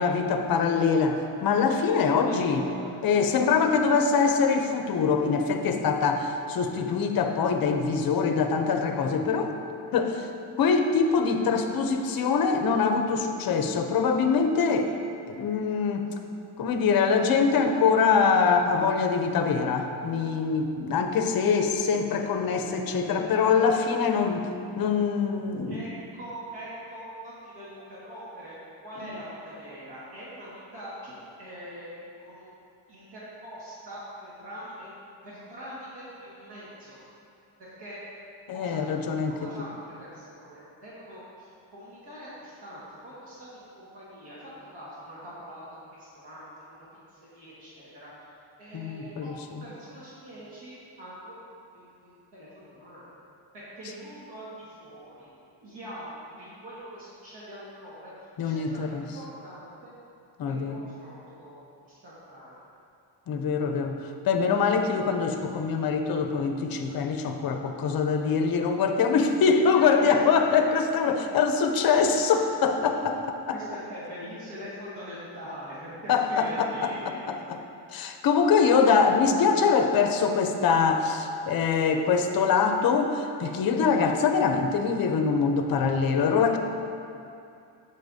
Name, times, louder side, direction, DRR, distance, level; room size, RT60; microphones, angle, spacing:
voice 1, 0.0-2.6 3.0-9.5 9.9-10.3 10.6-14.9 15.3-16.1 16.6-24.5 24.8-25.8 38.5-39.5 48.7-49.3 58.4-59.0 60.4-60.8 63.3-64.0 64.2-73.5 76.1-76.9 77.3-77.6 77.9-86.6, left 5 dB, 50° left, 6 dB, 0.6 m, -24 dB
voice 2, 2.2-2.9 23.0-23.9 25.7-28.6 28.8-32.5 32.9-34.9 35.2-37.0 37.6-38.0 38.5-49.3 49.6-51.4 51.7-53.0 53.5-55.3 55.6-59.9 60.5-62.5 69.7-70.1 71.0-71.1 73.5-77.3, equal, 55° right, -9 dB, 1.7 m, -43 dB
8.3 x 6.8 x 2.7 m, 2.6 s
cardioid pair, 135°, 47 cm